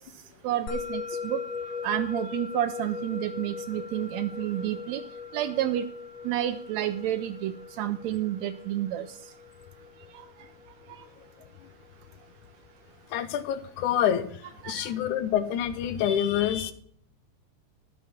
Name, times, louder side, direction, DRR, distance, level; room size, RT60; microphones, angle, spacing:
voice 1, 0.4-1.4 1.8-5.0 5.3-5.9 6.2-9.1 14.6-14.9, right 13 dB, 80° right, 11 dB, 1.7 m, -30 dB
Musical instrument, 0.7-11.3, left 5 dB, 65° left, 1.3 m, -39 dB
voice 2, 13.1-14.3 14.7-16.7, left 10 dB, 80° left, 12 dB, 2.2 m, -26 dB
12.0 x 6.6 x 5.8 m, 0.64 s
omnidirectional pair, 3.5 m